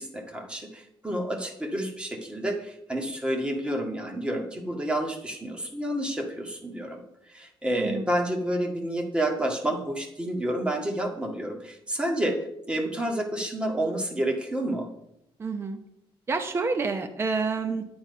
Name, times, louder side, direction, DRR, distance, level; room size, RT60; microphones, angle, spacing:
voice 1, 0.0-7.0 7.3-14.9 17.6-17.7, right 1 dB, 10° right, 2 dB, 1.8 m, -29 dB
voice 2, 15.4-15.8 16.3-17.8, right 4 dB, 25° right, 5 dB, 0.8 m, -28 dB
10.0 x 8.7 x 5.4 m, 0.80 s
cardioid pair, 145°, 10 cm